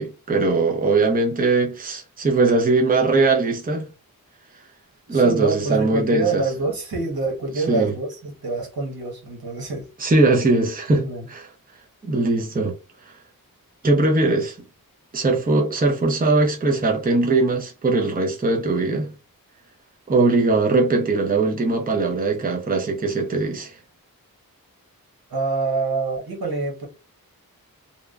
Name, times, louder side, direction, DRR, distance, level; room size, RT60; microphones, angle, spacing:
voice 1, 0.0-3.9 5.1-6.4 7.7-7.9 10.0-11.5 12.1-12.7 13.1-13.2 13.8-14.6 15.1-19.1 20.1-23.8, right 3 dB, 25° right, 0.6 m, -20 dB
voice 2, 5.1-9.9 10.9-11.3 25.3-26.9, right 3 dB, 85° right, 1.1 m, -26 dB
2.8 x 2.2 x 2.3 m
wide cardioid pair, 70°, 36 cm